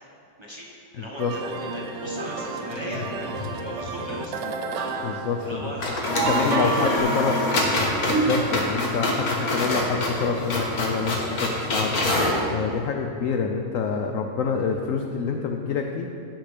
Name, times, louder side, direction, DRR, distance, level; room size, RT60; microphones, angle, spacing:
voice 1, 0.4-3.3 3.5-4.4 4.8-7.1, equal, 20° right, -4 dB, 0.9 m, -38 dB
sound 1, 1.2-5.8 6.1-7.0, right 4 dB, 75° right, 1.4 m, -31 dB
sound 2, 2.7-3.5 3.8-3.9 5.4-5.5 5.8-12.4, left 2 dB, 55° left, 1.7 m, -26 dB
voice 2, 5.0-5.7 6.2-7.4 8.1-12.2 12.5-16.1, left 5 dB, 75° left, 3 dB, 0.7 m, -27 dB
Laughter, 6.2-11.3, right 2 dB, 45° right, 1.8 m, -31 dB
15.5 x 5.9 x 3.4 m, 2.5 s
omnidirectional pair, 2.0 m